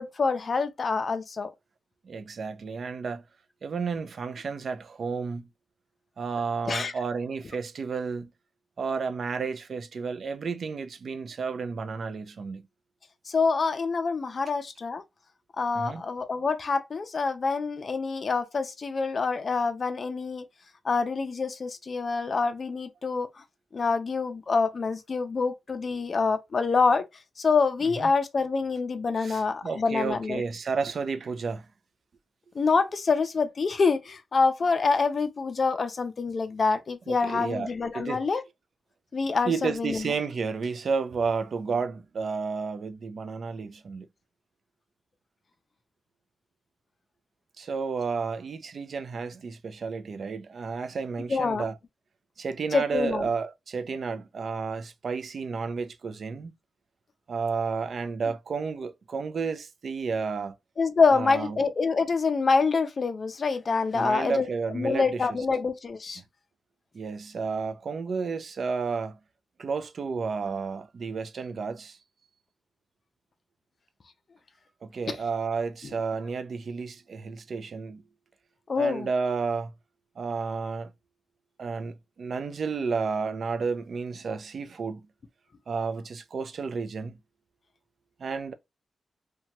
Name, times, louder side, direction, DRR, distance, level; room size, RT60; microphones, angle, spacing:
voice 1, 0.0-1.5 6.7-6.9 13.3-15.0 15.6-20.5 20.8-23.3 23.7-27.1 27.4-30.4 32.6-38.4 39.1-40.1 51.3-51.7 52.7-53.3 60.8-64.5 64.7-66.2 75.1-75.2 78.7-79.1, left 4 dB, 40° left, 0.4 m, -26 dB
voice 2, 2.0-3.2 3.6-5.5 6.2-8.3 8.8-12.6 15.8-16.0 27.8-28.1 29.2-31.7 37.1-38.2 39.4-44.1 47.6-51.8 52.4-56.5 57.3-60.6 61.1-61.6 63.9-65.3 66.9-69.2 69.6-72.0 74.8-78.0 78.8-79.7 80.2-80.9 81.6-85.1 85.7-87.2 88.2-88.5, right 5 dB, 55° right, 0.3 m, -31 dB
2.8 x 2.2 x 2.8 m
wide cardioid pair, 165°, 0 cm